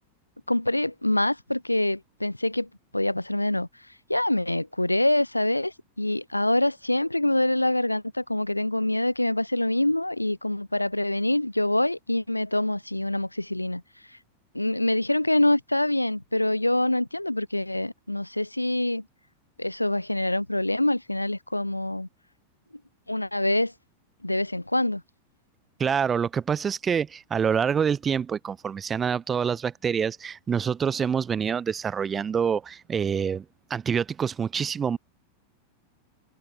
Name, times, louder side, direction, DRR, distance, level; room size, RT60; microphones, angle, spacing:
voice 1, 0.5-2.7 2.9-3.7 4.1-13.8 14.5-19.0 19.6-22.1 23.1-23.7 24.2-25.0, left 1 dB, 85° left, 0.6 m, -25 dB
voice 2, 25.8-33.4 33.7-35.0, right 7 dB, 20° right, 0.6 m, -26 dB
figure-of-eight pair, 90°, 0 cm